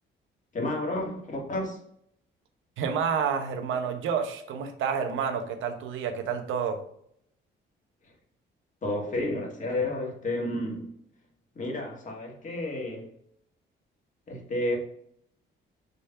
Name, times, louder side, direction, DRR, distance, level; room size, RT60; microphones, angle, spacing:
voice 1, 0.5-1.8 8.8-10.9 11.5-13.1 14.3-14.8, left 1 dB, 40° left, 0 dB, 2.2 m, -31 dB
voice 2, 2.8-6.8, right 6 dB, 80° right, 7 dB, 0.9 m, -29 dB
5.4 x 3.3 x 5.5 m, 0.68 s
cardioid pair, 90°, 20 cm